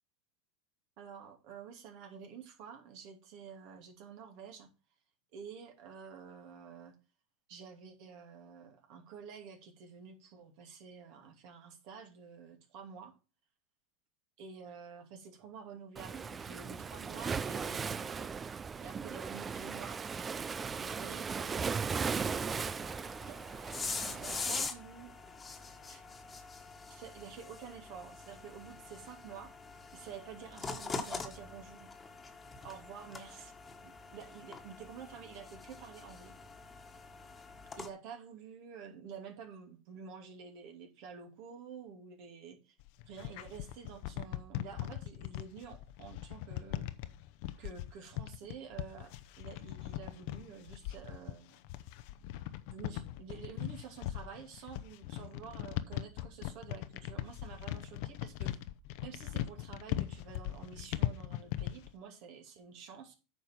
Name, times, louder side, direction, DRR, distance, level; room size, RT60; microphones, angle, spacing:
voice 1, 1.0-4.7 5.3-6.9 7.5-13.1 14.4-18.3 18.8-20.0 20.8-21.9 23.3-25.2 25.9-26.0 26.9-29.5 29.9-31.9 32.6-33.5 33.8-36.3 37.8-42.7 43.0-46.9 47.6-51.6 52.7-58.6 59.0-63.2, right 6 dB, 60° right, 4 dB, 2.7 m, -49 dB
Waves surf, 16.0-24.7, right 5 dB, 25° right, 0.4 m, -37 dB
sound 1, 22.0-37.9, left 4 dB, 20° left, 1.6 m, -44 dB
sound 2, 42.8-61.9, left 14 dB, 60° left, 0.8 m, -39 dB
9.2 x 5.3 x 5.9 m, 0.32 s
hypercardioid pair, 90°, 0 cm